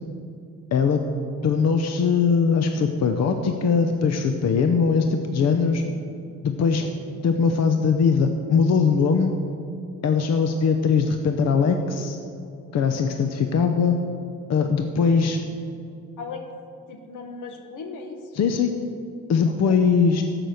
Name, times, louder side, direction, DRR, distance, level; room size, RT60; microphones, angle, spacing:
voice 1, 0.7-1.0 1.4-5.8 6.4-6.9 7.2-9.4 10.0-12.2 12.7-14.0 14.5-15.4 18.3-18.8 19.3-20.2, left 5 dB, 60° left, 6 dB, 0.8 m, -21 dB
voice 2, 6.6-6.9 16.2-16.4 16.9-18.2 19.6-19.8, left 4 dB, 85° left, 5 dB, 1.5 m, -37 dB
14.5 x 6.1 x 6.5 m, 2.5 s
cardioid pair, 90°, 30 cm